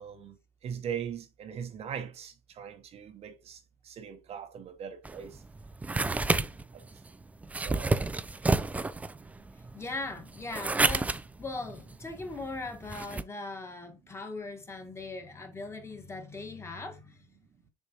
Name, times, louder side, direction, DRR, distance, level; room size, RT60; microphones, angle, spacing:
voice 1, 0.0-5.4 6.0-6.1 6.7-6.8 7.6-7.9, right 8 dB, 40° right, 0.8 m, -40 dB
sound 1, 5.1-13.2, right 3 dB, 10° right, 0.3 m, -31 dB
voice 2, 9.7-17.2, left 3 dB, 15° left, 1.4 m, -40 dB
7.0 x 4.7 x 2.9 m
supercardioid pair, 110°, 15 cm